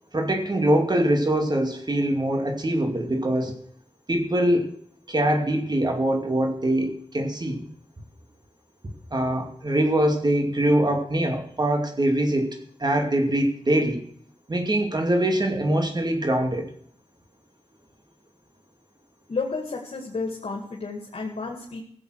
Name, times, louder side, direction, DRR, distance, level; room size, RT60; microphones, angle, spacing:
voice 1, 0.1-3.6 4.1-4.7 5.1-7.6 9.1-14.0 14.5-16.7, right 1 dB, 40° right, 4 dB, 2.4 m, -23 dB
voice 2, 19.3-21.8, left 4 dB, 75° left, 0 dB, 2.2 m, -31 dB
16.0 x 7.8 x 6.4 m, 0.63 s
wide cardioid pair, 60°, 11 cm